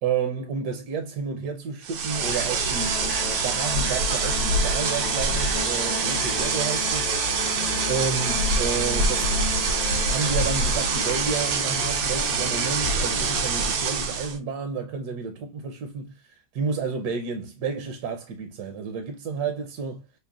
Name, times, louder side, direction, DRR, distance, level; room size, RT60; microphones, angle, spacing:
voice 1, 0.0-3.0 3.4-7.1 7.9-9.3 10.1-16.1 16.5-20.0, right 5 dB, 70° right, 1.1 m, -30 dB
sound 1, 1.8-14.4, right 4 dB, 90° right, 1.5 m, -25 dB
sound 2, 2.1-14.3, left 7 dB, 60° left, 1.1 m, -35 dB
6.3 x 2.1 x 2.3 m
omnidirectional pair, 1.9 m